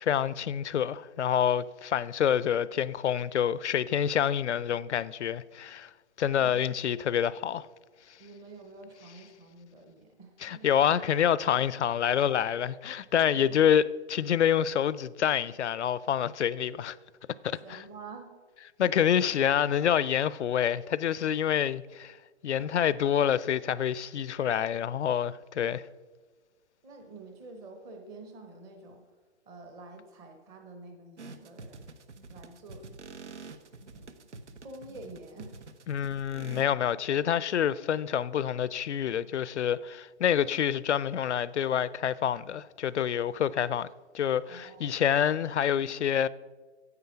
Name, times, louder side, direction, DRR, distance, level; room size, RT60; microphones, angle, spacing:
voice 1, 0.0-5.9 6.2-7.7 10.4-17.0 17.4-17.8 18.8-22.2 22.4-25.8 35.9-43.9 44.1-46.3, left 9 dB, 75° left, 0.5 m, -27 dB
voice 2, 8.2-10.7 13.3-13.6 17.6-18.3 22.5-22.7 26.8-29.0 29.5-31.9 32.3-32.9 33.9-34.3 34.6-35.6 44.5-45.0, right 3 dB, 10° right, 0.7 m, -48 dB
sound 1, 31.2-36.6, right 3 dB, 85° right, 1.1 m, -47 dB
9.7 x 8.2 x 5.7 m
hypercardioid pair, 150°, 35 cm